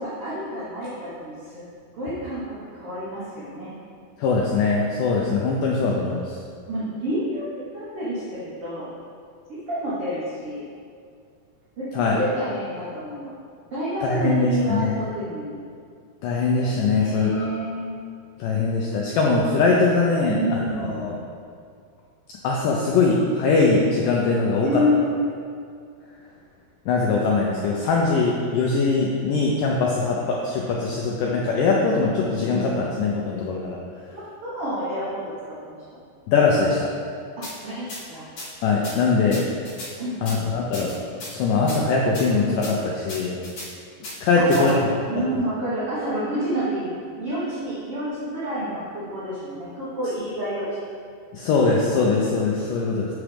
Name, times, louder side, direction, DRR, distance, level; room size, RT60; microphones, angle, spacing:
voice 1, 0.0-1.6 2.0-3.7 6.7-8.9 9.5-10.6 11.8-11.9 12.1-13.3 13.7-15.5 16.9-17.9 20.2-21.1 24.6-25.2 34.1-36.0 37.6-38.3 40.0-40.5 44.4-44.8 45.1-50.7, equal, 65° right, -10 dB, 1.4 m, -28 dB
voice 2, 4.2-6.4 11.9-12.2 14.0-15.0 16.2-17.5 18.4-21.2 22.4-24.8 26.9-33.8 36.3-36.9 38.6-39.5 40.2-40.9 41.3-43.4 44.2-44.7 51.3-53.1, left 4 dB, 80° left, -2 dB, 1.9 m, -21 dB
sound 1, 37.4-37.5 37.9-38.0 38.4-38.5 38.8-38.9 39.3-39.9 40.3-40.4 40.7-41.3 41.7-41.8 42.1-42.3 42.6-42.7 43.1-43.7 44.0-44.1 44.5-44.7, left 1 dB, 50° left, 2.0 m, -35 dB
7.1 x 6.1 x 3.3 m, 2.2 s
omnidirectional pair, 4.4 m